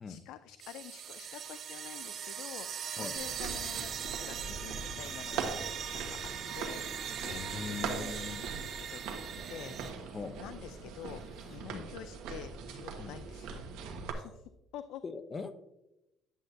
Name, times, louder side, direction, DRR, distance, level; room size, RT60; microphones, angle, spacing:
voice 1, 0.0-5.5 5.9-6.2 6.5-9.2 9.5-13.6 14.1-15.0, left 11 dB, 75° left, 12 dB, 0.3 m, -48 dB
sound 1, 0.6-9.9, right 8 dB, 45° right, 0.7 m, -40 dB
sound 2, 3.2-14.1, right 5 dB, 80° right, 1.2 m, -41 dB
sound 3, 6.6-11.6, equal, 10° left, 3.1 m, -61 dB
voice 2, 7.3-8.4 10.1-10.3 11.7-11.9 13.0-13.1 15.0-15.6, left 5 dB, 25° left, 10 dB, 0.6 m, -40 dB
9.8 x 7.8 x 2.6 m, 0.91 s
cardioid pair, 140°, 0 cm